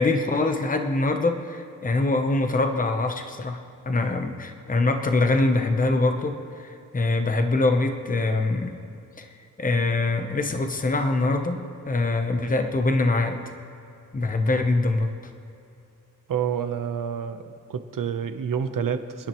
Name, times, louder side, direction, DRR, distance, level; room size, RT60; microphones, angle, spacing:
voice 1, 0.0-3.6 3.9-8.7 9.2-9.3 9.6-13.4 14.1-15.1, left 2 dB, 25° left, 6 dB, 0.8 m, -24 dB
voice 2, 16.3-19.3, right 7 dB, 75° right, 9 dB, 0.9 m, -28 dB
29.0 x 10.0 x 3.1 m, 2.7 s
wide cardioid pair, 155°, 33 cm